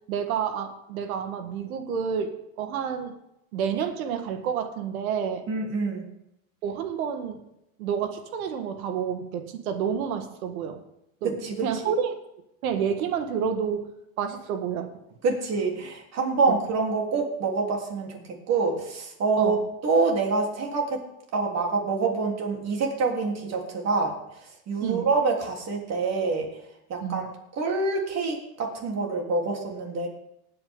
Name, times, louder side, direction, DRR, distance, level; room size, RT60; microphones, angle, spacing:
voice 1, 0.1-3.1 3.5-5.5 6.6-7.4 7.8-10.8 11.2-12.1 12.6-13.9 14.2-14.9 16.5-16.6 19.4-19.6 24.8-25.1 27.0-27.2, right 7 dB, 85° right, 7 dB, 1.7 m, -29 dB
voice 2, 5.5-6.0 11.2-11.9 15.2-18.2 18.5-19.6 19.8-21.0 21.3-24.1 24.7-26.5 26.9-30.1, right 4 dB, 40° right, 1 dB, 3.5 m, -26 dB
18.5 x 8.8 x 3.8 m, 0.83 s
supercardioid pair, 125°, 42 cm